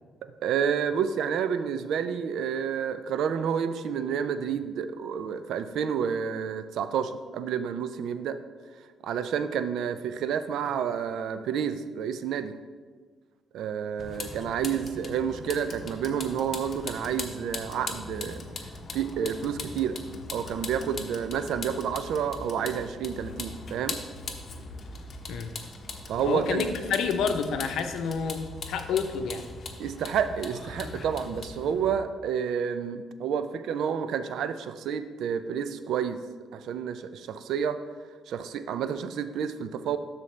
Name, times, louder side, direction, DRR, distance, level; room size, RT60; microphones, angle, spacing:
voice 1, 0.2-8.4 9.0-12.6 13.5-18.5 18.9-20.0 20.3-24.0 26.1-26.7 29.8-36.2 36.5-37.8 38.3-40.0, right 7 dB, 80° right, 11 dB, 0.4 m, -29 dB
Vehicle, 14.0-32.0, left 3 dB, 45° left, 0.9 m, -40 dB
voice 2, 26.2-29.4, left 6 dB, 80° left, 6 dB, 0.6 m, -29 dB
12.5 x 4.1 x 3.2 m, 1.5 s
cardioid pair, 90°, 0 cm